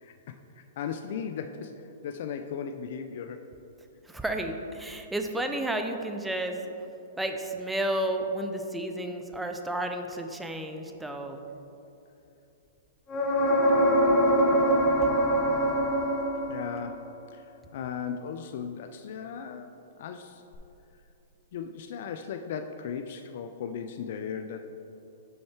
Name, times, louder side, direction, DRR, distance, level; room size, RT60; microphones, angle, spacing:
voice 1, 0.0-0.3 0.8-1.7 2.0-3.4 16.1-17.0 17.3-17.4 17.7-19.7 20.0-20.4 21.5-24.6, left 7 dB, 60° left, 7 dB, 0.3 m, -36 dB
voice 2, 4.1-6.6 7.2-11.4, right 1 dB, 5° right, 5 dB, 0.5 m, -32 dB
sound 1, 13.1-16.9 20.5-20.6, equal, 25° left, 0.8 m, -23 dB
6.4 x 5.5 x 4.4 m, 2.9 s
hypercardioid pair, 135°, 0 cm